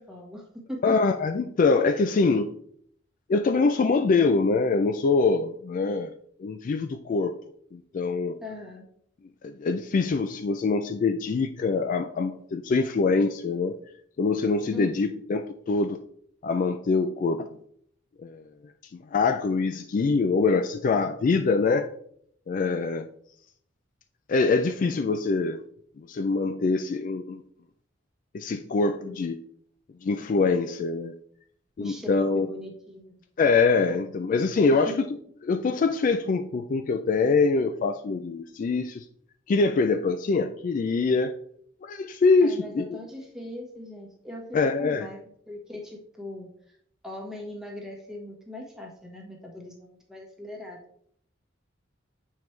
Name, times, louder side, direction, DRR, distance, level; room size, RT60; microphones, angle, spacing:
voice 1, 0.0-1.0 8.4-8.8 14.7-15.2 29.0-29.2 31.8-33.2 34.6-35.0 42.4-45.2 45.5-46.5 47.0-50.8, left 1 dB, 5° right, -1 dB, 1.3 m, -40 dB
voice 2, 0.8-2.5 3.3-6.1 6.4-7.3 7.7-8.4 9.4-13.7 14.2-16.0 16.4-17.5 18.2-18.4 19.1-21.9 22.5-23.1 24.3-25.6 26.0-27.4 28.3-29.4 30.0-31.1 31.8-32.5 33.4-35.1 35.4-39.0 39.5-41.3 41.8-43.0 44.5-45.1, left 4 dB, 45° left, 8 dB, 0.3 m, -24 dB
7.2 x 4.6 x 3.2 m, 0.66 s
head